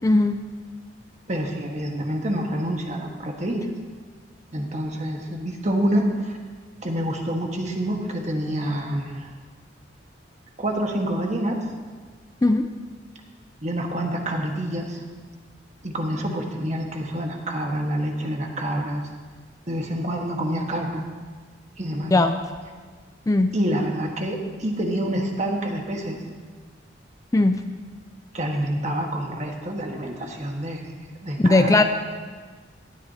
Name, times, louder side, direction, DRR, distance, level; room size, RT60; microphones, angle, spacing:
voice 1, 0.0-0.4 12.4-12.6 22.1-22.3 23.3-23.5 27.3-27.6 31.4-31.8, left 2 dB, 20° left, 7 dB, 0.4 m, -18 dB
voice 2, 1.3-3.6 4.5-6.4 6.8-9.3 10.6-11.7 13.6-15.0 15.8-19.0 19.7-21.0 21.8-22.1 23.5-26.2 28.3-31.8, right 1 dB, 40° right, 1 dB, 1.5 m, -27 dB
17.5 x 12.0 x 2.8 m, 1.5 s
head